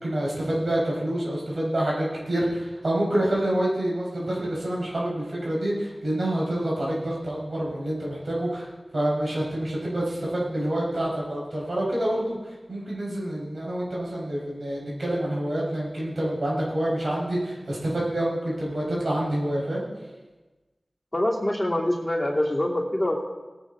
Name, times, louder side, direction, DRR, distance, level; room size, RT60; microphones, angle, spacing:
voice 1, 0.0-8.7 8.9-19.8, right 1 dB, 80° right, -4 dB, 4.7 m, -27 dB
voice 2, 21.1-23.2, left 1 dB, 20° left, -4 dB, 2.9 m, -25 dB
18.5 x 8.9 x 3.7 m, 1.2 s
wide cardioid pair, 45°, 0 cm